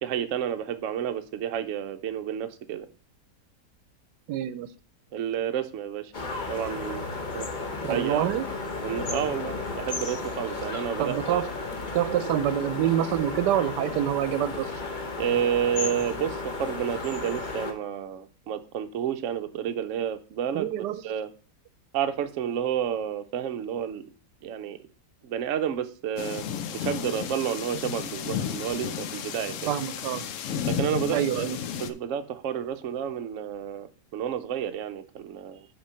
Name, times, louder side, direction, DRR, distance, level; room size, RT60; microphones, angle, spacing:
voice 1, 0.0-2.9 5.1-6.1 6.5-7.0 7.3-7.5 7.9-8.2 8.8-11.4 15.2-20.7 21.0-21.3 21.9-24.0 24.4-24.8 25.2-26.4 26.7-29.8 30.7-31.4 31.8-35.7, right 9 dB, 60° right, 8 dB, 0.8 m, -30 dB
voice 2, 4.3-4.7 7.8-8.5 11.0-11.5 11.9-14.7 20.5-21.0 29.7-30.3 31.1-31.6, right 11 dB, 80° right, 14 dB, 1.2 m, -26 dB
sound 1, 6.1-17.7, left 3 dB, 35° left, 1.0 m, -34 dB
sound 2, 26.2-31.9, left 8 dB, 65° left, 0.8 m, -33 dB
5.9 x 5.1 x 5.5 m, 0.39 s
omnidirectional pair, 1.8 m